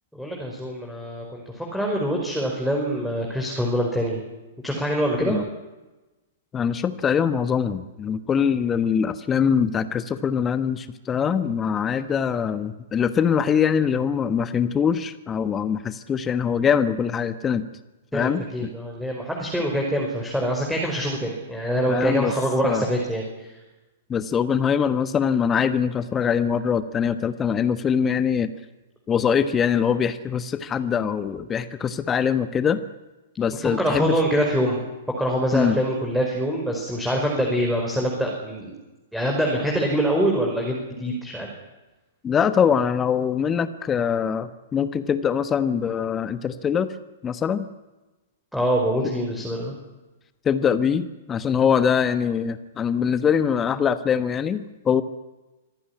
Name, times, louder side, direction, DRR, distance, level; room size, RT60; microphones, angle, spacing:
voice 1, 0.2-4.2 4.6-5.4 18.1-23.2 33.6-34.8 35.2-38.8 39.1-41.5 48.5-49.7, equal, ahead, -1 dB, 5.3 m, -24 dB
voice 2, 6.5-17.6 18.1-18.7 21.9-22.3 22.6-22.9 24.1-28.5 29.1-32.8 33.4-34.2 35.5-35.8 42.2-46.9 47.2-47.7 50.4-55.0, left 7 dB, 20° left, 12 dB, 1.3 m, -23 dB
26.0 x 16.5 x 10.0 m, 1.1 s
figure-of-eight pair, 110°, 0 cm